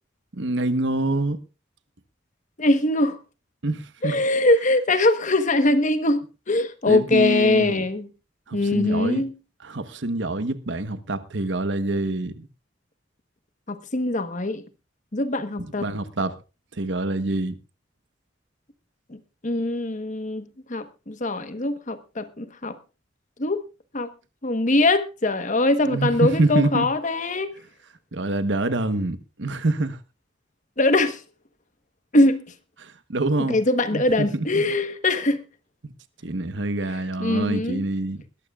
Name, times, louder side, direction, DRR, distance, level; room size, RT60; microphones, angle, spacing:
voice 1, 0.3-1.4 3.6-4.2 6.9-7.8 8.5-9.2 9.6-12.5 15.6-16.4 16.7-17.6 25.8-26.9 28.1-30.0 32.8-33.6 33.9-34.6 36.2-38.2, right 2 dB, 70° right, 1.1 m, -26 dB
voice 2, 2.6-3.2 4.0-8.1 8.5-9.3 13.7-14.6 15.1-15.9 19.4-22.8 23.4-23.6 23.9-24.1 24.4-27.5 30.8-31.2 32.1-32.4 33.5-35.4 37.2-37.9, left 2 dB, 40° left, 1.2 m, -22 dB
21.5 x 14.0 x 2.4 m
head